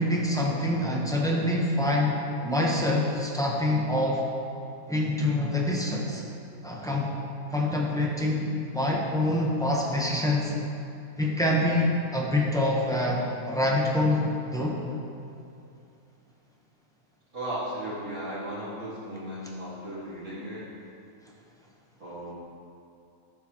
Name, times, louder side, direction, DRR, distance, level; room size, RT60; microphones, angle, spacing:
voice 1, 0.0-2.2 2.4-4.2 4.9-6.2 6.6-7.1 7.5-10.5 11.2-14.8, left 1 dB, 5° left, -3 dB, 0.9 m, -26 dB
voice 2, 17.3-20.7 22.0-22.3, right 1 dB, 55° right, -9 dB, 2.4 m, -36 dB
13.5 x 6.8 x 3.0 m, 2.6 s
omnidirectional pair, 1.5 m